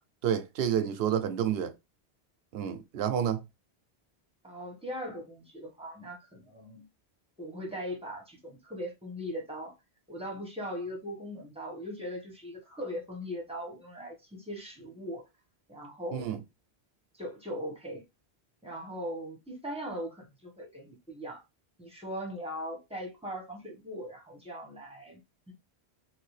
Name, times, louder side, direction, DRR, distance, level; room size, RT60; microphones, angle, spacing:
voice 1, 0.2-1.7 2.5-3.4 16.1-16.4, right 9 dB, 70° right, 0.8 m, -29 dB
voice 2, 4.4-6.8 7.4-9.8 10.1-15.2 15.7-16.3 17.1-18.0 18.6-21.4 21.8-25.2 25.5-25.6, equal, 5° right, 1.1 m, -39 dB
3.1 x 2.8 x 3.1 m
omnidirectional pair, 1.1 m